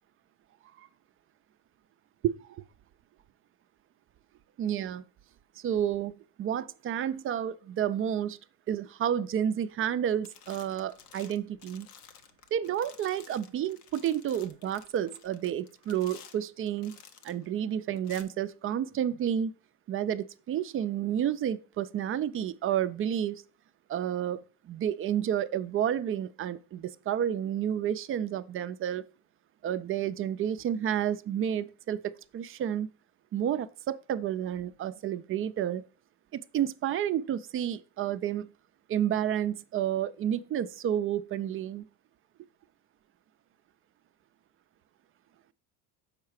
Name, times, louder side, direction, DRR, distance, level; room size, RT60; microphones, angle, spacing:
voice 1, 2.2-2.6 4.6-5.0 5.6-8.4 8.7-11.9 12.5-17.0 17.2-19.5 19.9-23.4 23.9-24.4 24.7-29.0 29.6-32.9 33.3-35.8 36.3-38.5 38.9-41.8, right 10 dB, 30° right, 0.4 m, -30 dB
sound 1, 9.7-10.0 10.2-17.5 18.0-18.2, left 7 dB, 90° left, 0.9 m, -53 dB
6.6 x 4.6 x 4.7 m
hypercardioid pair, 80°, 45 cm